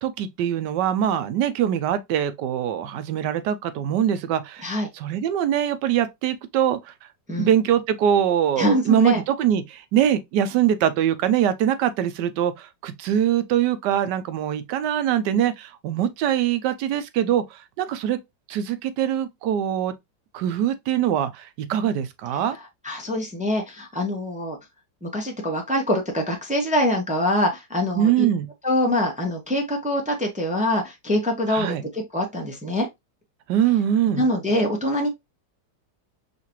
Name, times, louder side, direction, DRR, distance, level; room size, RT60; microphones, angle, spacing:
voice 1, 0.0-6.8 7.4-18.2 18.5-19.9 20.3-22.6 28.0-28.5 31.5-31.8 33.5-34.3, right 10 dB, 75° right, 1.2 m, -23 dB
voice 2, 8.6-9.2 22.8-24.6 25.0-28.3 28.6-32.9 34.2-35.1, left 1 dB, 10° right, 0.3 m, -24 dB
5.6 x 2.6 x 2.9 m
omnidirectional pair, 2.0 m